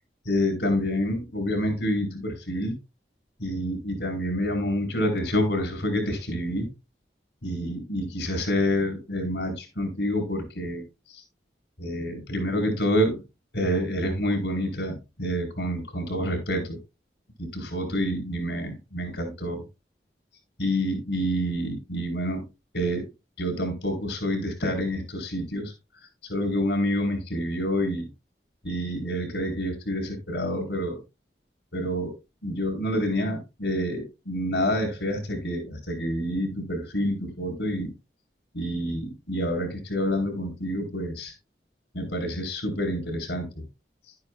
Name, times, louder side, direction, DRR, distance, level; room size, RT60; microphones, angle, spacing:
voice 1, 0.2-2.7 3.4-6.7 7.4-10.8 11.1-11.2 11.8-13.2 13.5-16.8 17.4-19.6 20.6-22.4 22.7-23.0 23.4-25.7 26.3-28.1 28.6-31.0 31.7-32.1 32.4-37.9 38.5-41.3 41.9-43.6, equal, 90° left, 4.6 m, -28 dB
12.0 x 9.6 x 2.4 m
head